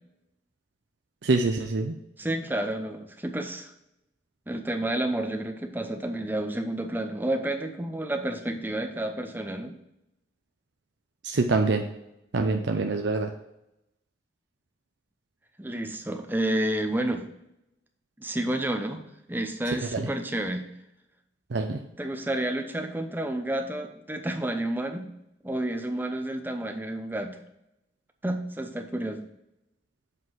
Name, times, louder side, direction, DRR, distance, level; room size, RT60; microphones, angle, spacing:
voice 1, 1.2-1.9 11.2-11.8 12.3-13.3 19.9-20.1 21.5-21.8, right 3 dB, 65° right, 4 dB, 0.6 m, -25 dB
voice 2, 2.2-3.7 4.5-9.7 15.6-17.3 18.2-19.0 19.3-20.7 22.0-25.1 25.4-27.4 28.2-29.2, right 1 dB, 10° right, 5 dB, 0.7 m, -30 dB
7.7 x 3.8 x 6.2 m, 0.83 s
head